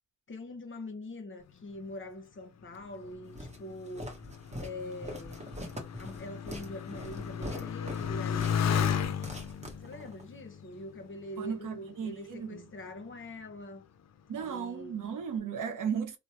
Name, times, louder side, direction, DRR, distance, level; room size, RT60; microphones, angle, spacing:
voice 1, 0.3-4.2 4.6-5.5 6.0-9.1 9.8-13.8 14.4-15.0, left 1 dB, 40° left, 0.9 m, -44 dB
Motorcycle, 2.8-11.8 12.5-13.1, left 8 dB, 55° left, 0.5 m, -35 dB
Walk footsteps, 3.4-10.3, equal, 20° right, 0.9 m, -43 dB
voice 2, 11.4-12.6 14.3-16.2, right 7 dB, 75° right, 0.7 m, -35 dB
3.0 x 2.0 x 2.8 m
cardioid pair, 90°, 32 cm